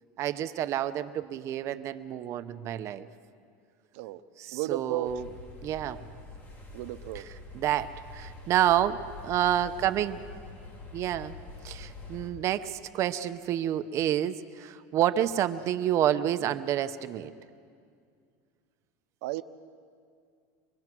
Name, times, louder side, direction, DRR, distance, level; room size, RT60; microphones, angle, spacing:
voice 1, 0.2-3.1 4.4-5.3 5.6-6.0 7.1-10.2 10.9-11.3 11.6-17.3, right 11 dB, 40° right, 11 dB, 0.8 m, -29 dB
voice 2, 4.5-5.1 6.7-7.2 19.2-19.4, right 16 dB, 70° right, 11 dB, 0.9 m, -33 dB
sound 1, 5.0-12.3, left 3 dB, 25° left, 3.1 m, -46 dB
25.5 x 21.5 x 6.1 m, 2.2 s
supercardioid pair, 155°, 8 cm